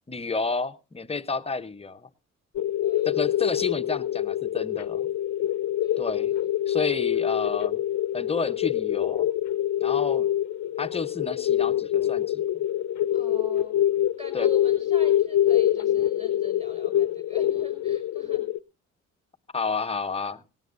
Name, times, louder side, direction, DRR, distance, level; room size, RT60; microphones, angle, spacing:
voice 1, 0.1-2.1 3.0-5.1 6.0-6.3 6.7-7.8 8.1-9.3 9.8-10.3 10.8-12.4 14.3-14.5 19.5-20.4, left 4 dB, 20° left, 9 dB, 0.8 m, -30 dB
sound 1, 2.6-18.6, left 12 dB, 65° left, 0.7 m, -25 dB
voice 2, 2.8-3.1 5.8-6.2 13.1-13.8 14.2-18.4, left 1 dB, 25° right, 5 dB, 5.9 m, -44 dB
18.0 x 17.0 x 2.5 m, 0.29 s
cardioid pair, 90°, 30 cm